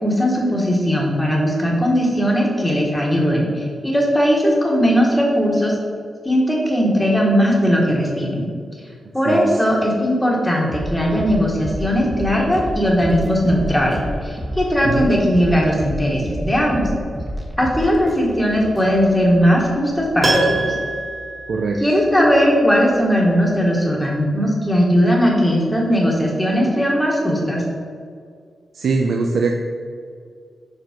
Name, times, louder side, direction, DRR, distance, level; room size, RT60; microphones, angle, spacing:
voice 1, 0.0-5.8 6.2-8.5 9.1-16.9 17.6-20.8 21.8-27.6, equal, 5° left, -2 dB, 1.4 m, -18 dB
sound 1, 10.7-20.3, equal, 10° right, 1.1 m, -30 dB
Piano, 20.2-22.3 22.6-22.7, right 2 dB, 30° right, 1.8 m, -23 dB
voice 2, 21.5-21.8 28.7-29.5, right 4 dB, 65° right, 2 dB, 0.5 m, -21 dB
5.7 x 5.4 x 5.0 m, 2.1 s
wide cardioid pair, 150°, 0 cm